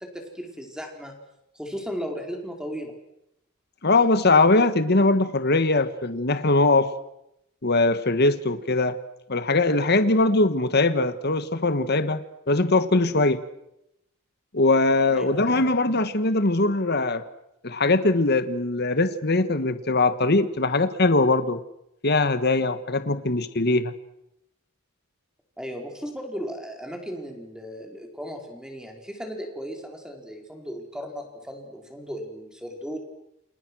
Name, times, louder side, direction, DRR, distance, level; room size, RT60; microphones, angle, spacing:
voice 1, 0.1-1.1 1.5-2.9 15.1-15.6 25.6-33.0, equal, 5° right, 2 dB, 4.7 m, -36 dB
voice 2, 3.8-6.9 7.6-9.0 9.3-13.4 14.5-17.2 17.6-21.6 22.0-23.9, left 2 dB, 50° left, 11 dB, 1.5 m, -21 dB
29.0 x 28.0 x 6.4 m, 0.82 s
head